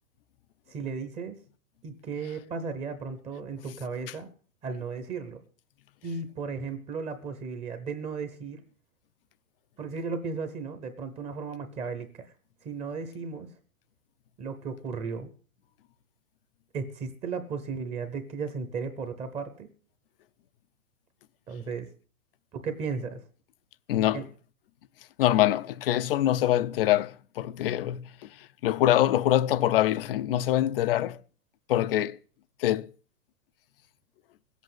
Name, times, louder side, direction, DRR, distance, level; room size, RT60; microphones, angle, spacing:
voice 1, 0.7-1.3 1.8-4.3 4.6-5.4 6.0-8.6 9.8-12.3 12.6-13.5 14.4-15.3 16.7-19.7 21.5-21.9 22.5-23.2 24.1-24.2, right 5 dB, 15° right, 0.9 m, -35 dB
voice 2, 23.9-24.2 25.2-28.3 28.6-31.2 31.7-32.2 32.6-32.9, left 13 dB, 40° left, 0.6 m, -24 dB
16.5 x 8.2 x 7.8 m
hypercardioid pair, 150°, 42 cm